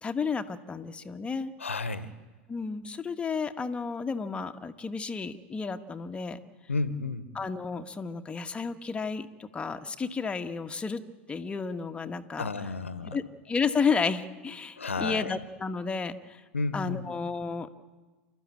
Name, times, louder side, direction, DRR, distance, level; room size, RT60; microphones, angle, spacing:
voice 1, 0.0-1.5 2.5-6.4 7.3-11.0 11.3-12.5 13.1-16.4 16.7-17.7, left 5 dB, 15° left, 7 dB, 1.4 m, -32 dB
voice 2, 1.6-2.1 6.7-7.3 12.4-13.2 14.8-15.4 16.5-17.1, left 3 dB, 90° left, 14 dB, 1.2 m, -32 dB
28.0 x 13.0 x 8.5 m, 1.3 s
hypercardioid pair, 90°, 7 cm